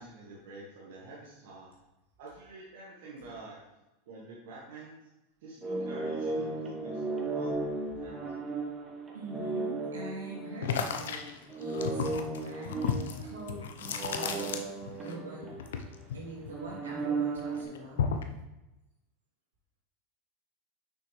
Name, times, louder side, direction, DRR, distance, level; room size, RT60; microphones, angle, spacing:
voice 1, 0.0-1.7 2.2-3.6 4.0-5.1 5.4-8.3, right 2 dB, 70° right, -5 dB, 1.4 m, -48 dB
sound 1, 5.6-11.1 11.5-16.0 16.5-17.6, right 3 dB, 20° right, 1.2 m, -35 dB
voice 2, 7.5-8.0 9.1-13.6 14.1-14.7 15.0-15.6 16.1-18.0, right 2 dB, 90° right, -3 dB, 2.1 m, -43 dB
sound 2, 10.6-15.1 15.4-17.0 17.4-18.4, left 7 dB, 80° left, 0.6 m, -34 dB
6.1 x 5.9 x 3.2 m, 0.97 s
hypercardioid pair, 95°, 0 cm